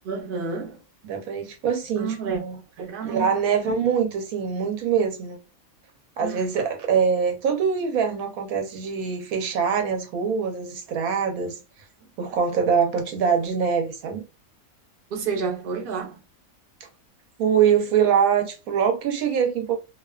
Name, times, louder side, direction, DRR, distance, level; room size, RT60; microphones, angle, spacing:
voice 1, 0.0-0.8 2.0-2.4 2.8-3.3 6.2-6.5 15.1-16.2, right 5 dB, 50° right, 0.7 m, -29 dB
voice 2, 1.0-2.6 3.0-5.4 6.2-11.6 12.2-14.2 17.4-19.8, right 7 dB, 80° right, 1.1 m, -23 dB
2.4 x 2.2 x 2.3 m
omnidirectional pair, 1.5 m